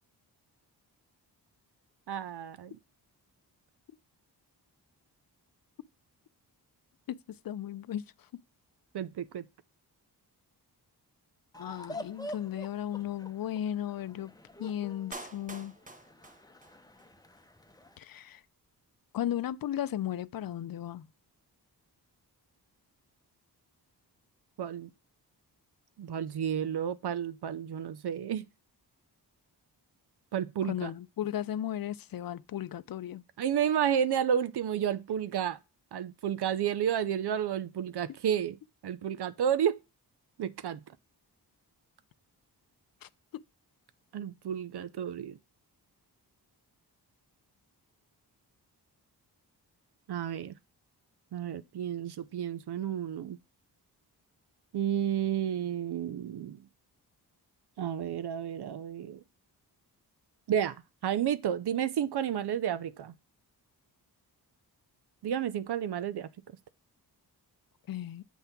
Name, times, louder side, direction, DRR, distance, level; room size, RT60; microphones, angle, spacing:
voice 1, 2.1-2.8 8.9-9.5 24.6-24.9 26.0-28.4 30.3-30.9 33.4-35.6 35.9-38.6 38.8-39.8 40.4-40.8 44.1-45.4 50.1-50.5 51.3-53.4 54.7-56.6 57.8-59.2 60.5-60.7 61.0-63.1 65.2-66.3, right 9 dB, 70° right, 0.6 m, -31 dB
voice 2, 7.4-8.0 11.6-14.3 14.6-15.7 18.0-18.4 19.1-21.1 30.6-33.2 43.0-43.4 67.9-68.2, left 11 dB, 55° left, 0.5 m, -35 dB
sound 1, 11.5-18.0, left 1 dB, 10° left, 0.8 m, -47 dB
Clapping, 15.1-17.1 17.4-17.5, right 2 dB, 20° right, 1.0 m, -46 dB
7.3 x 3.4 x 5.8 m
cardioid pair, 70°, 41 cm